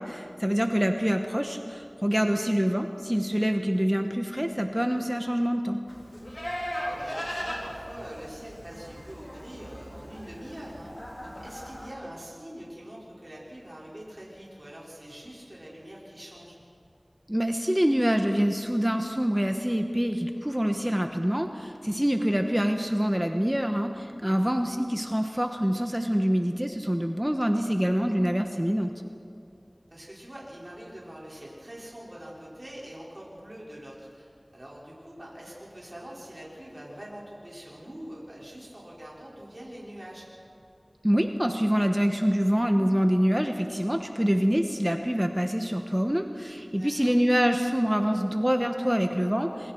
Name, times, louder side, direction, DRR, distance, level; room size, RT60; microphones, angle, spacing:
voice 1, 0.0-5.8 17.3-28.9 41.0-49.7, equal, 10° right, 5 dB, 1.3 m, -25 dB
voice 2, 2.1-2.4 6.9-10.9 11.2-16.6 24.2-24.5 29.9-40.3 46.7-47.1, equal, 45° right, -5 dB, 5.8 m, -44 dB
Livestock farm animals working animals, 5.9-11.9, equal, 25° left, 4.0 m, -38 dB
27.0 x 23.5 x 4.7 m, 2.6 s
wide cardioid pair, 40°, 0 cm